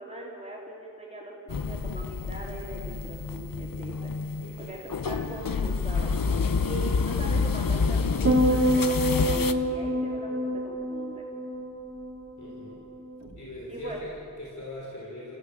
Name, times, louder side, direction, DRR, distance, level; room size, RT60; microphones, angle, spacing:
voice 1, 0.0-9.0 9.2-11.2 13.7-14.0, right 1 dB, 20° right, -4 dB, 3.8 m, -41 dB
sound 1, 1.5-9.5, left 4 dB, 80° left, 0.9 m, -28 dB
voice 2, 4.4-4.7 12.4-12.8 13.3-15.4, left 1 dB, 60° left, -5 dB, 5.9 m, -41 dB
sound 2, 8.2-12.6 12.9-13.4, equal, 50° right, 2.7 m, -27 dB
27.0 x 15.5 x 7.7 m, 2.3 s
wide cardioid pair, 75°, 33 cm